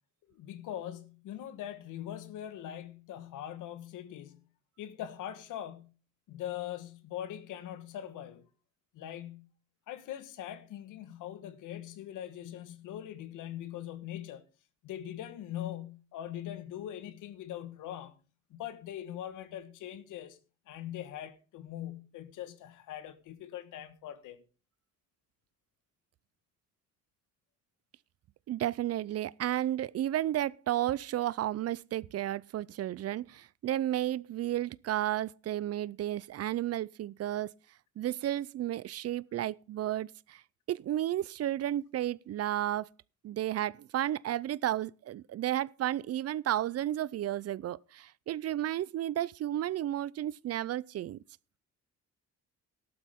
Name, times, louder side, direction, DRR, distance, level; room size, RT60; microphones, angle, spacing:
voice 1, 0.3-4.5 4.8-5.9 6.3-8.5 8.9-9.5 9.9-14.5 14.8-18.2 18.5-20.4 20.7-24.4, left 11 dB, 90° left, 1.4 m, -42 dB
voice 2, 28.5-37.5 38.0-40.4 40.7-42.9 43.2-51.2, right 12 dB, 55° right, 0.5 m, -32 dB
13.5 x 12.0 x 3.6 m
cardioid pair, 90°, 30 cm